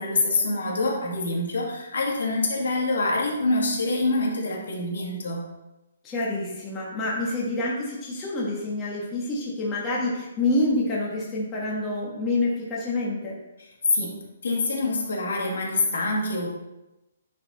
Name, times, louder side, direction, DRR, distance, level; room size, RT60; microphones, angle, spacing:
voice 1, 0.0-5.4 13.9-14.2 14.4-16.5, left 2 dB, 70° left, -1 dB, 1.9 m, -25 dB
voice 2, 6.0-13.3, left 2 dB, 15° left, -5 dB, 1.2 m, -27 dB
9.7 x 4.0 x 4.1 m, 0.96 s
hypercardioid pair, 175°, 0 cm